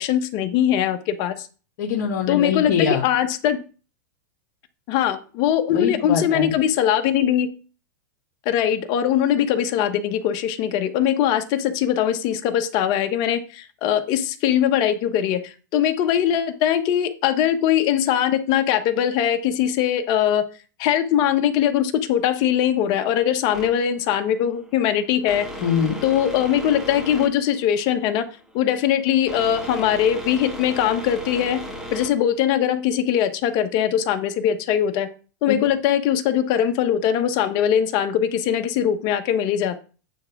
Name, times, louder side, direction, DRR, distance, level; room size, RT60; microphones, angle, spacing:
voice 1, 0.0-1.5 2.3-3.6 4.9-7.5 8.4-20.4 20.8-25.5 26.0-28.2 28.5-31.6 31.9-35.1 35.4-39.8, left 10 dB, 45° left, 8 dB, 1.0 m, -21 dB
voice 2, 1.8-3.1 5.7-6.5 25.6-26.0 35.5-35.6, left 7 dB, 60° left, 0 dB, 1.4 m, -23 dB
sound 1, 23.5-32.8, equal, 5° right, 1.6 m, -36 dB
9.2 x 3.5 x 5.9 m, 0.37 s
hypercardioid pair, 130°, 10 cm